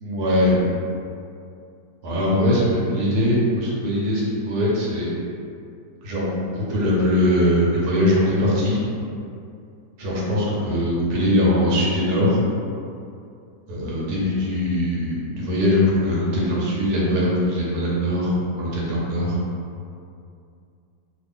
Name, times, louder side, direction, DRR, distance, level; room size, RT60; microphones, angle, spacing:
voice 1, 0.0-0.6 2.0-5.1 6.0-8.8 10.0-12.4 13.7-19.4, left 1 dB, 70° right, -5 dB, 1.2 m, -21 dB
2.8 x 2.6 x 3.5 m, 2.4 s
omnidirectional pair, 1.8 m